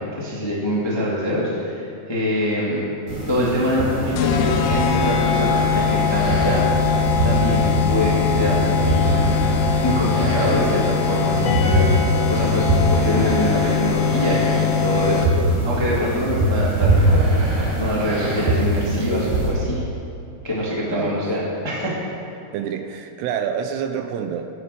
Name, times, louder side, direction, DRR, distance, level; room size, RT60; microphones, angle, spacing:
voice 1, 0.0-2.9 3.3-6.7 7.2-9.3 9.8-11.9 12.3-15.3 15.6-19.8 20.4-22.0, equal, 15° left, -5 dB, 0.9 m, -24 dB
sound 1, 3.1-19.5, right 1 dB, 65° right, 5.3 m, -23 dB
sound 2, 4.2-15.6, left 7 dB, 90° left, 2.9 m, -21 dB
sound 3, 11.4-13.2, left 2 dB, 55° left, 3.2 m, -29 dB
voice 2, 22.5-24.5, right 8 dB, 85° right, 7 dB, 2.8 m, -27 dB
12.0 x 8.8 x 7.0 m, 2.5 s
omnidirectional pair, 4.8 m